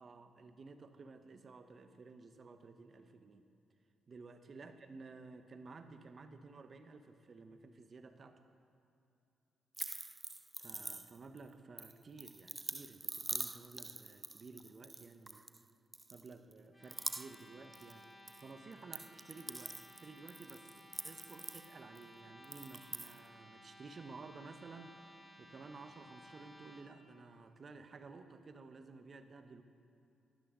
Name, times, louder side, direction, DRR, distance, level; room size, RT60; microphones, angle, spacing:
voice 1, 0.0-3.5 4.1-8.4 10.6-15.4 16.1-18.1 18.4-25.1 25.4-29.6, right 3 dB, 50° right, 9 dB, 1.0 m, -54 dB
sound 1, 9.7-11.4 11.8-15.6 15.9-16.5 16.8-18.4 18.7-22.0 22.4-23.2, right 2 dB, 20° right, 0.5 m, -45 dB
sound 2, 16.7-26.8, equal, 15° left, 3.1 m, -58 dB
17.5 x 12.0 x 3.8 m, 2.6 s
hypercardioid pair, 45°, 0 cm